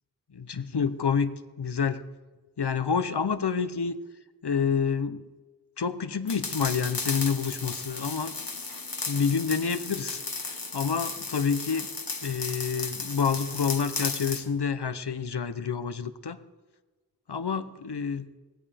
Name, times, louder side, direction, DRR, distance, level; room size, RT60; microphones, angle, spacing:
voice 1, 0.3-1.3 1.6-2.0 2.6-4.0 4.4-5.2 5.8-8.3 9.1-11.9 12.2-16.4 17.3-18.3, left 6 dB, 90° left, 12 dB, 0.8 m, -28 dB
sound 1, 6.3-14.5, left 4 dB, 60° left, 1.3 m, -35 dB
19.0 x 16.0 x 3.4 m, 1.2 s
wide cardioid pair, 45°, 39 cm